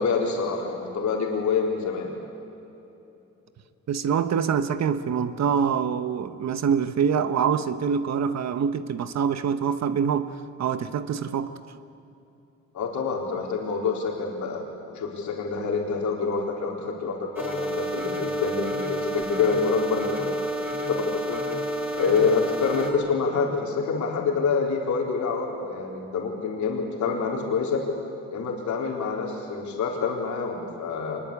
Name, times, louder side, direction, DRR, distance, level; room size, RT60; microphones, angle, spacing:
voice 1, 0.0-2.1 12.7-20.4 20.9-21.4 22.0-27.8 28.3-31.2, left 5 dB, 70° left, 0 dB, 4.1 m, -27 dB
voice 2, 3.9-11.6, right 7 dB, 60° right, 12 dB, 1.3 m, -25 dB
sound 1, 17.4-22.9, equal, 10° right, 6.0 m, -29 dB
25.0 x 22.0 x 8.5 m, 3.0 s
cardioid pair, 90°, 30 cm